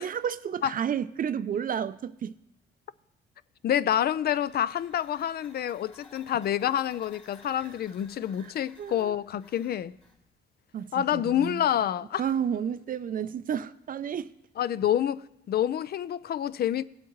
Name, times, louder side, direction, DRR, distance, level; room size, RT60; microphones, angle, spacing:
voice 1, 0.0-2.3 7.6-7.7 8.4-8.5 8.8-9.2 10.7-11.6 12.2-14.3, right 8 dB, 45° right, 0.5 m, -31 dB
voice 2, 3.6-9.9 10.9-12.2 14.6-16.8, left 10 dB, 50° left, 0.4 m, -28 dB
sound 1, 4.0-10.2, left 3 dB, 35° left, 3.2 m, -57 dB
17.0 x 8.2 x 3.1 m
cardioid pair, 90°, 20 cm